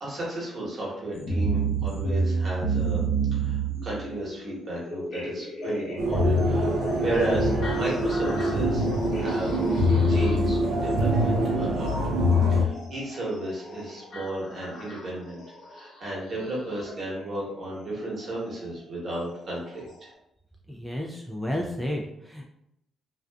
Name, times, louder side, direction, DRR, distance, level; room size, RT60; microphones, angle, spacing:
voice 1, 0.0-3.0 3.3-8.9 9.1-9.6 10.1-11.9 12.5-15.4 15.7-20.1, right 1 dB, 50° right, -5 dB, 1.1 m, -33 dB
sound 1, 1.1-17.0 18.2-18.3 19.1-19.2 19.9-20.0, right 4 dB, 65° left, 0.7 m, -32 dB
sound 2, 6.0-12.6, left 1 dB, 80° right, 0.5 m, -24 dB
voice 2, 20.7-22.4, left 1 dB, ahead, -1 dB, 0.3 m, -32 dB
2.5 x 2.3 x 2.2 m, 0.80 s
cardioid pair, 90°, 0 cm